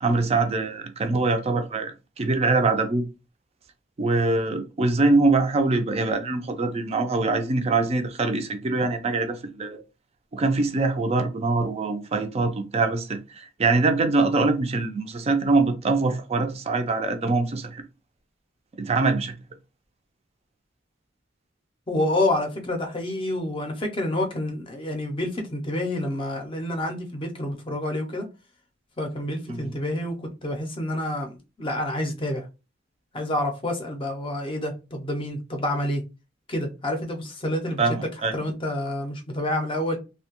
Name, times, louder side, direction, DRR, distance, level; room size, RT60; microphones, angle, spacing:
voice 1, 0.0-3.0 4.0-9.8 10.3-17.8 18.8-19.3 29.5-29.7 37.8-38.3, right 3 dB, 35° right, 0.4 m, -23 dB
voice 2, 21.9-28.3 29.0-32.4 33.1-36.0 36.5-38.0 38.3-40.0, left 1 dB, 25° left, 0.5 m, -28 dB
2.7 x 2.1 x 2.9 m
head